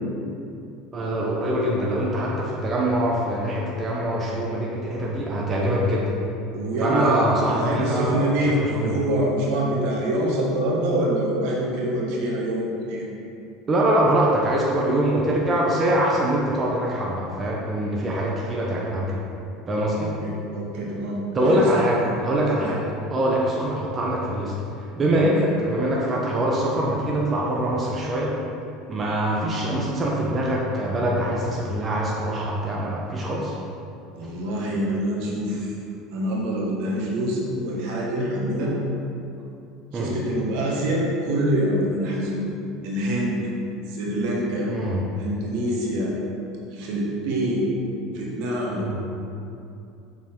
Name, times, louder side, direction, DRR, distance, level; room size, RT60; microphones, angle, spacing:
voice 1, 0.9-6.2 6.8-9.0 13.7-19.2 19.7-20.1 21.3-22.8 23.1-28.3 28.9-33.6 39.9-40.1 44.7-45.1 48.8-49.0, right 1 dB, 30° right, -3 dB, 1.1 m, -24 dB
voice 2, 6.5-13.1 19.9-21.6 22.0-22.1 22.5-22.7 25.2-25.4 34.1-35.7 36.1-38.7 39.9-42.5 42.8-43.4 43.9-44.7 45.2-46.1 46.7-47.7 48.1-48.8, right 1 dB, 65° right, -3 dB, 1.7 m, -25 dB
7.0 x 5.9 x 3.9 m, 2.6 s
hypercardioid pair, 75°, 0 cm